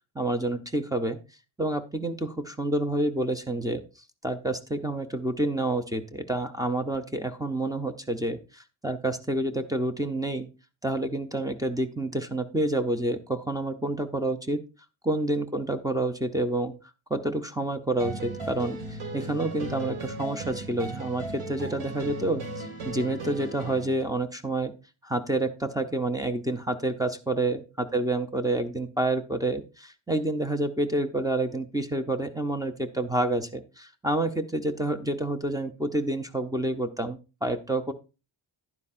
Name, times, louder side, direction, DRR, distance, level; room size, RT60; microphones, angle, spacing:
voice 1, 0.2-1.2 1.6-3.8 4.2-10.5 10.8-14.6 15.0-16.7 17.1-24.7 25.0-37.9, right 1 dB, 10° right, 9 dB, 0.4 m, -28 dB
sound 1, 18.0-24.0, right 2 dB, 80° right, 2.0 m, -37 dB
11.0 x 9.7 x 2.4 m, 0.30 s
wide cardioid pair, 175°, 49 cm